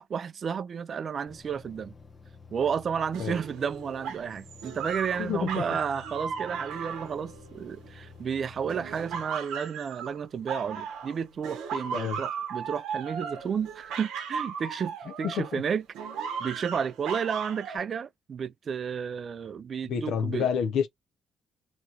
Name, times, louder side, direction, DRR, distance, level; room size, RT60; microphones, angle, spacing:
voice 1, 0.0-1.9 2.5-15.8 16.2-20.5, right 7 dB, 50° right, 0.3 m, -32 dB
sound 1, 1.3-9.3, left 4 dB, 30° left, 0.8 m, -51 dB
sound 2, 3.1-8.1 8.7-11.2 11.4-15.6 15.9-17.8, right 6 dB, 90° right, 0.7 m, -37 dB
voice 2, 5.2-5.6 11.9-12.2 15.2-15.6 19.9-20.9, left 7 dB, 75° left, 0.5 m, -28 dB
2.9 x 2.4 x 2.8 m
cardioid pair, 90°, 0 cm